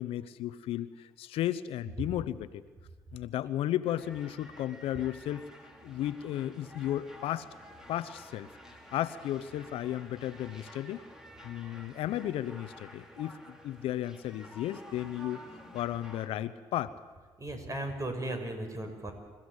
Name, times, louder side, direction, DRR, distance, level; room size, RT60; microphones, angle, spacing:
voice 1, 0.0-2.6 3.1-5.5 5.8-7.5 7.9-11.0 11.4-16.9, left 12 dB, 75° left, 15 dB, 0.8 m, -34 dB
sound 1, 3.8-16.3, equal, 5° right, 3.8 m, -51 dB
voice 2, 17.4-19.1, right 1 dB, 35° right, 6 dB, 5.6 m, -36 dB
29.0 x 15.0 x 8.1 m, 1.4 s
supercardioid pair, 60°, 10 cm